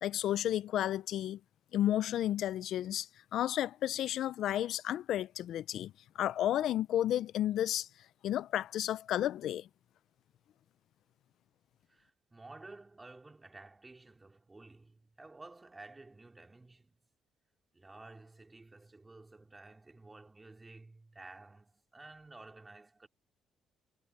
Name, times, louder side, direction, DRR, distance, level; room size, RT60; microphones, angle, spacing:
voice 1, 0.0-1.4 1.7-7.9 8.2-9.7, left 12 dB, 60° left, 0.4 m, -32 dB
voice 2, 11.9-17.0 17.7-23.1, right 2 dB, 15° right, 3.7 m, -53 dB
cardioid pair, 170°, 0 cm